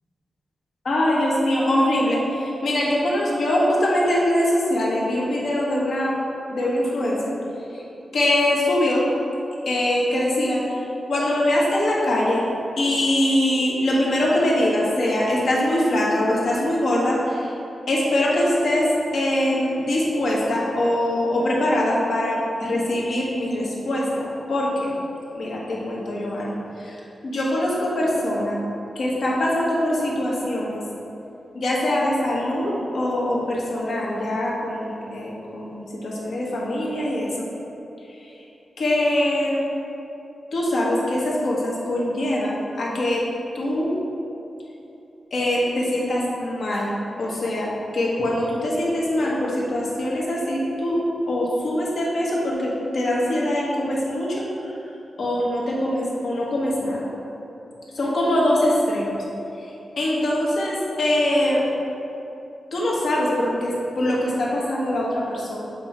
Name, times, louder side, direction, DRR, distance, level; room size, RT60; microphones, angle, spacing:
voice 1, 0.8-6.2 6.5-7.3 8.1-9.0 9.6-10.6 11.1-12.4 12.8-17.5 17.9-18.9 19.1-24.9 25.3-26.9 27.2-28.6 28.9-30.8 31.5-37.3 38.8-39.6 40.5-43.2 43.5-43.9 45.3-46.9 47.2-51.0 51.3-54.5 55.2-57.1 57.9-59.2 60.0-61.6 62.7-65.6, left 1 dB, 70° left, -5 dB, 1.3 m, -23 dB
7.7 x 3.5 x 4.5 m, 2.9 s
wide cardioid pair, 165°, 0 cm